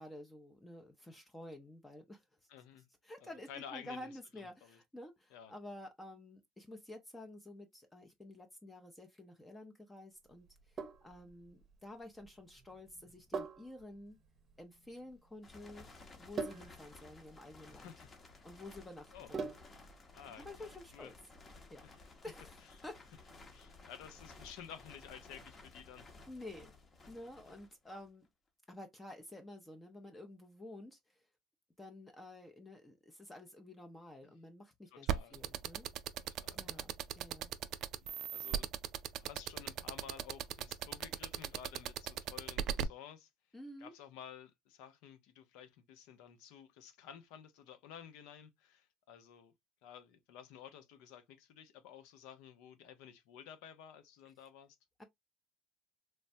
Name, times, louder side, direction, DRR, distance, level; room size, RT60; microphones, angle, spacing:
voice 1, 0.0-2.2 3.0-14.2 14.6-15.9 16.2-17.9 18.4-19.5 20.4-21.1 21.7-21.8 22.2-23.0 26.3-26.7 27.1-28.3 28.7-31.3 31.8-35.9 36.5-36.9 37.2-37.5 43.5-43.9 55.0-55.1, left 1 dB, 15° left, 0.6 m, -51 dB
voice 2, 2.5-2.9 3.2-4.8 5.3-5.5 17.7-18.1 19.1-19.3 20.1-20.5 20.9-21.1 21.8-22.1 23.5-26.1 27.5-27.6 34.9-35.4 36.4-36.9 37.9-38.7 39.1-43.3 43.8-49.5 49.8-54.8, left 8 dB, 75° left, 0.7 m, -53 dB
Sink (filling or washing), 10.5-19.9, right 4 dB, 35° right, 0.7 m, -46 dB
sound 1, 15.4-28.3, left 3 dB, 30° left, 0.9 m, -57 dB
sound 2, 35.1-42.8, right 10 dB, 60° right, 0.3 m, -36 dB
3.3 x 2.1 x 2.6 m
supercardioid pair, 95°, 0 cm